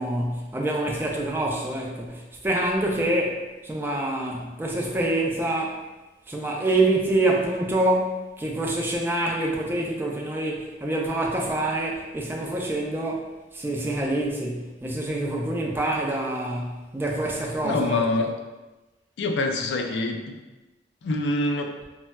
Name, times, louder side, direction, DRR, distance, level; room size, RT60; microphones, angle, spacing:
voice 1, 0.0-5.8 6.3-18.1, right 1 dB, 10° right, -1 dB, 0.3 m, -26 dB
voice 2, 17.6-18.4 19.2-20.4 21.0-21.8, left 2 dB, 80° left, 4 dB, 0.3 m, -25 dB
4.0 x 2.2 x 2.2 m, 1.1 s
head